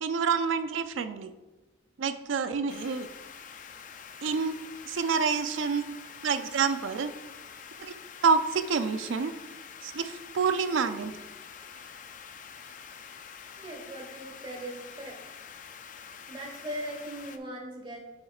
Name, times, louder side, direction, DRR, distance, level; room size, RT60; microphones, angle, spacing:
voice 1, 0.0-1.3 2.0-3.1 4.2-4.6 4.9-6.0 6.2-7.1 7.8-7.9 8.2-9.3 9.8-11.1, right 5 dB, 85° right, 11 dB, 0.5 m, -28 dB
sound 1, 2.7-17.4, left 7 dB, 45° left, 0.4 m, -46 dB
voice 2, 13.6-15.2 16.3-18.0, right 1 dB, 25° right, 0 dB, 1.3 m, -39 dB
7.4 x 7.2 x 2.4 m, 1.1 s
head